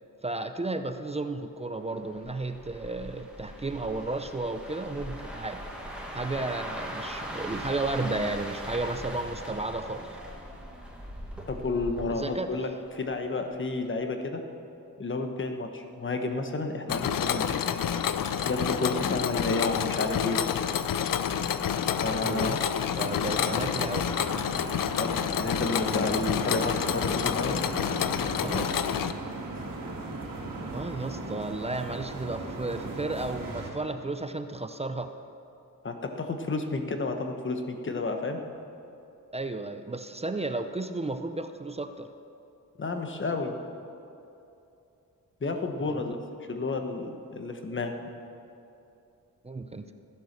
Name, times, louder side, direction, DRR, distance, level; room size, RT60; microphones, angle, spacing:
voice 1, 0.2-5.6 6.1-10.1 12.1-12.5 22.2-22.6 22.9-24.1 28.4-28.8 30.7-35.1 39.3-42.1 45.8-46.0 49.4-49.9, right 2 dB, 20° right, 8 dB, 0.5 m, -33 dB
sound 1, 2.1-13.2 13.5-13.8, equal, 5° right, 1.7 m, -40 dB
voice 2, 11.5-12.7 12.9-14.4 15.0-17.6 18.5-20.5 22.0-22.6 24.9-27.6 35.8-38.4 42.8-43.5 45.4-46.2 46.5-48.0, left 3 dB, 35° left, 5 dB, 1.1 m, -31 dB
Mechanisms, 16.9-29.1, left 8 dB, 75° left, 0.6 m, -28 dB
sound 2, 23.0-33.7, right 2 dB, 75° right, 2.6 m, -38 dB
15.0 x 10.5 x 6.6 m, 2.8 s
wide cardioid pair, 160°, 34 cm